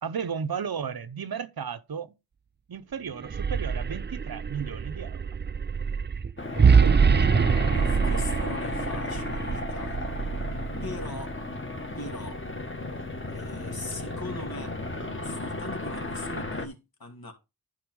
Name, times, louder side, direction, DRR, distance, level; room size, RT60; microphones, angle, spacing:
voice 1, 0.0-2.1 2.7-5.3 6.7-7.5, right 7 dB, 70° right, 0.8 m, -34 dB
sound 1, 3.1-11.3, right 6 dB, 30° right, 0.4 m, -25 dB
sound 2, 6.4-16.7, left 2 dB, 30° left, 1.6 m, -34 dB
voice 2, 7.7-10.0 10.8-11.3 12.0-12.4 13.3-14.7 15.2-17.3, left 2 dB, 70° left, 2.4 m, -40 dB
11.0 x 4.6 x 4.7 m
wide cardioid pair, 50°, 38 cm